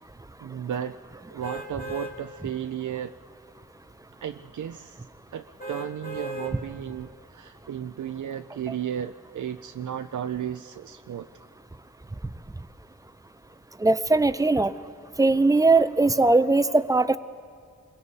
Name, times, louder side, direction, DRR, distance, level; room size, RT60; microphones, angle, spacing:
voice 1, 0.4-1.0 1.3-3.1 4.2-5.1 5.3-11.3, right 9 dB, 80° right, 7 dB, 0.5 m, -34 dB
sound 1, 1.4-2.1 2.7-2.8 5.6-6.5 7.1-7.2, right 1 dB, 30° left, 2.9 m, -36 dB
voice 2, 13.8-14.7 15.2-17.2, right 3 dB, 10° right, 13 dB, 0.6 m, -20 dB
28.0 x 22.0 x 4.1 m, 2.3 s
wide cardioid pair, 90°, 30 cm